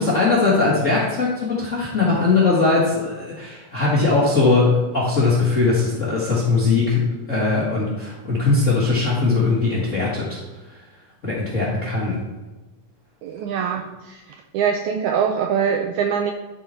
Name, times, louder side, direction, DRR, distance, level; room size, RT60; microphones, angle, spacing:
voice 1, 0.0-10.4 11.2-12.2, left 3 dB, 45° left, -5 dB, 1.0 m, -20 dB
voice 2, 13.2-14.2 14.5-16.3, right 7 dB, 85° right, 4 dB, 1.7 m, -23 dB
12.5 x 4.9 x 4.3 m, 1.2 s
omnidirectional pair, 3.9 m